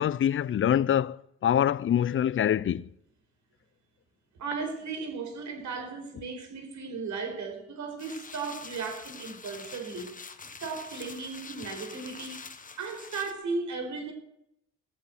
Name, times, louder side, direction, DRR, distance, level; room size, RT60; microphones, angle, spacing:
voice 1, 0.0-2.9, left 10 dB, 40° left, 0.6 m, -25 dB
voice 2, 4.4-10.1 10.6-12.4 12.8-14.1, right 4 dB, 70° right, 4.8 m, -36 dB
sound 1, 8.0-13.3, left 4 dB, 25° left, 1.5 m, -45 dB
18.5 x 7.7 x 8.1 m
cardioid pair, 90°, 30 cm